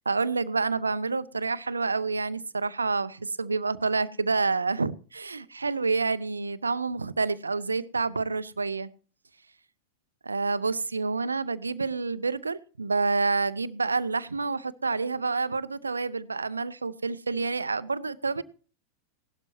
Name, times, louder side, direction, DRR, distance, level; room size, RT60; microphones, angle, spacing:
voice 1, 0.1-8.9 10.2-18.4, right 4 dB, 75° right, 0.5 m, -28 dB
17.0 x 12.0 x 3.0 m
figure-of-eight pair, 90°, 0 cm